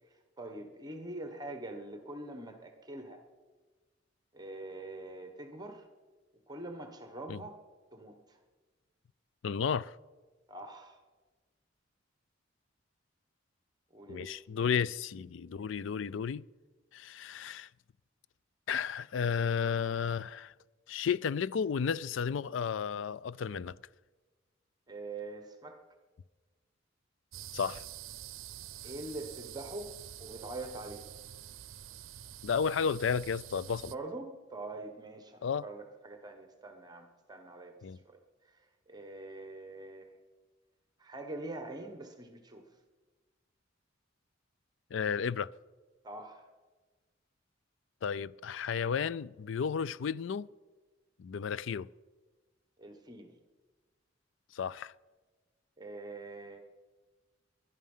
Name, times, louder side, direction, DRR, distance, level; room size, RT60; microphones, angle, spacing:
voice 1, 0.4-3.2 4.3-5.9 6.5-7.6 7.9-8.4 10.5-11.0 13.9-14.4 24.9-25.8 28.8-29.9 30.2-31.0 33.8-40.1 41.0-42.7 46.0-46.5 52.8-53.3 55.8-56.6, right 2 dB, 20° right, 1.2 m, -44 dB
voice 2, 9.4-10.0 14.1-16.5 16.9-17.7 18.7-20.5 20.9-23.8 27.5-27.8 32.4-33.9 35.4-35.6 37.8-38.0 44.9-45.5 48.0-50.5 51.2-51.9 54.5-54.9, left 6 dB, 70° left, 0.4 m, -33 dB
sound 1, 27.3-33.9, right 11 dB, 90° right, 0.6 m, -47 dB
21.0 x 11.5 x 5.6 m
head